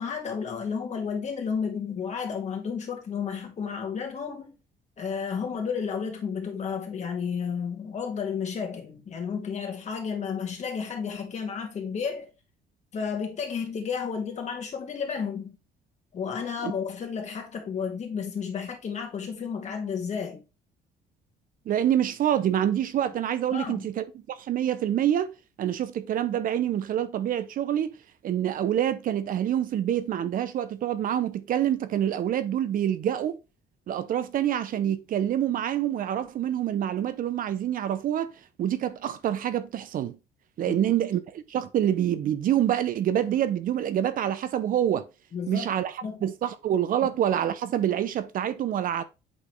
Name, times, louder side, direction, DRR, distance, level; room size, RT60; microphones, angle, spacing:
voice 1, 0.0-4.5 5.0-12.3 12.9-15.6 16.1-20.4 23.5-23.9 40.7-40.8 45.3-45.7 46.0-46.2, left 6 dB, 45° left, 2.2 m, -32 dB
voice 2, 21.7-25.3 25.6-27.9 28.2-33.4 33.9-38.3 38.6-40.2 40.6-45.1 45.5-49.0, right 10 dB, 55° right, 0.7 m, -26 dB
8.4 x 4.1 x 3.3 m
cardioid pair, 110°, 17 cm